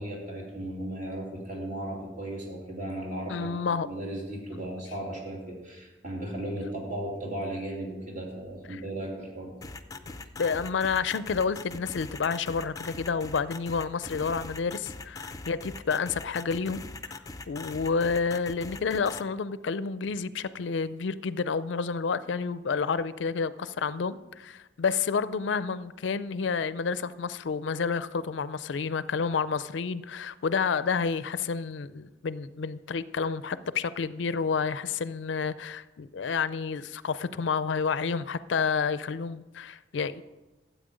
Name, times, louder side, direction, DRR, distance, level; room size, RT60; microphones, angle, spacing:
voice 1, 0.0-9.5 9.9-10.1, right 1 dB, 45° right, -1 dB, 2.7 m, -36 dB
voice 2, 3.3-3.9 8.7-8.8 10.4-16.8 17.5-40.2, left 5 dB, 80° left, 15 dB, 0.4 m, -29 dB
sound 1, 9.6-19.2, left 3 dB, 20° left, 0.5 m, -41 dB
12.5 x 8.2 x 5.1 m, 1.1 s
head